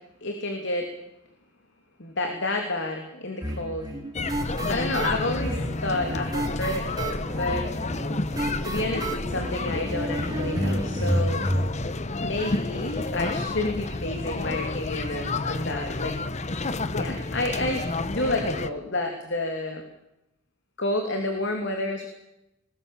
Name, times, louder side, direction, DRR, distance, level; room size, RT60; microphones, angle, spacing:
voice 1, 0.2-0.9 2.0-3.9 4.7-7.7 8.6-11.4 12.2-16.1 16.9-19.8 20.8-22.1, left 2 dB, 60° left, 3 dB, 2.9 m, -30 dB
sound 1, 3.4-11.7, equal, 20° right, 3.5 m, -30 dB
sound 2, 4.1-18.7, left 2 dB, 35° left, 0.9 m, -30 dB
21.0 x 20.0 x 7.2 m, 0.90 s
head